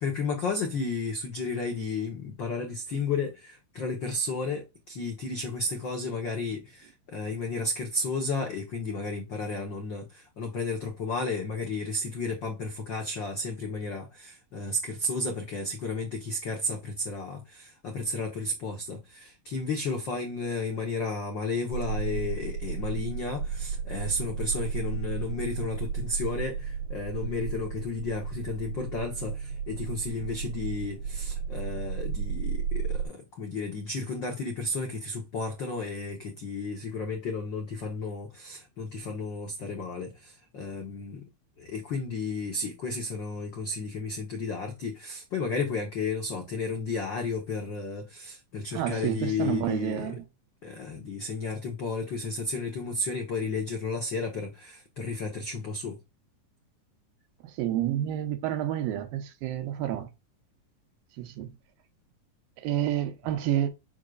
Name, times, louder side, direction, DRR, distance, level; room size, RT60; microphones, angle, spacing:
voice 1, 0.0-41.2 41.6-50.1 50.6-55.9, left 3 dB, 75° left, 1.0 m, -33 dB
sound 1, 21.7-33.1, right 6 dB, 65° right, 2.8 m, -33 dB
voice 2, 48.7-50.3 57.4-60.1 61.2-61.5 62.6-63.7, right 12 dB, 85° right, 2.7 m, -29 dB
6.3 x 6.3 x 2.5 m
omnidirectional pair, 4.0 m